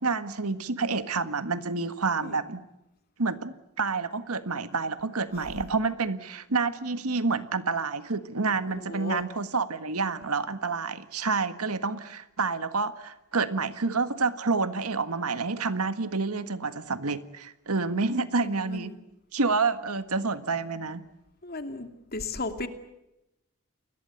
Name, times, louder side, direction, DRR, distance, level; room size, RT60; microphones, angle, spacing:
voice 1, 0.0-2.6 3.2-18.9 19.3-21.0, right 4 dB, 85° right, 11 dB, 1.7 m, -28 dB
voice 2, 8.7-9.2 18.4-19.0 21.4-22.7, left 3 dB, 45° left, 7 dB, 2.7 m, -36 dB
29.5 x 21.5 x 8.1 m, 0.90 s
head